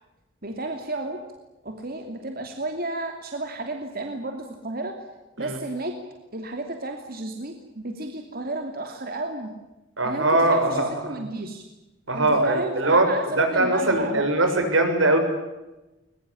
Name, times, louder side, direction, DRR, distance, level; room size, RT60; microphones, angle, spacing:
voice 1, 0.4-1.2 1.6-4.9 5.4-5.9 6.3-9.5 10.0-11.6 12.1-14.2, right 2 dB, 50° right, 4 dB, 2.8 m, -32 dB
voice 2, 10.0-11.2 12.1-15.2, right 2 dB, 80° right, 6 dB, 6.7 m, -21 dB
22.0 x 22.0 x 10.0 m, 1.0 s
head